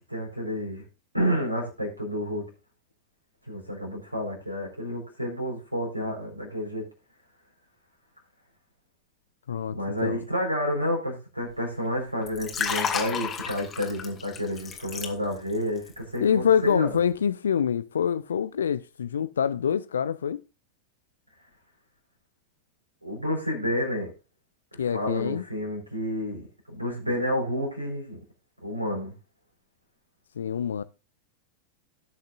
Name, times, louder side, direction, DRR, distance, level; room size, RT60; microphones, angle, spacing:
voice 1, 0.1-0.8 1.1-2.5 3.5-6.9 9.7-16.9 23.0-24.1 24.7-28.2 28.6-29.1, equal, 85° right, 4.3 m, -30 dB
voice 2, 9.5-10.2 16.2-20.4 24.8-25.4 30.4-30.8, left 8 dB, 65° left, 0.5 m, -25 dB
Liquid, 12.2-15.6 15.9-16.2, left 7 dB, 25° left, 2.2 m, -31 dB
18.0 x 6.5 x 2.5 m
figure-of-eight pair, 90°, 0 cm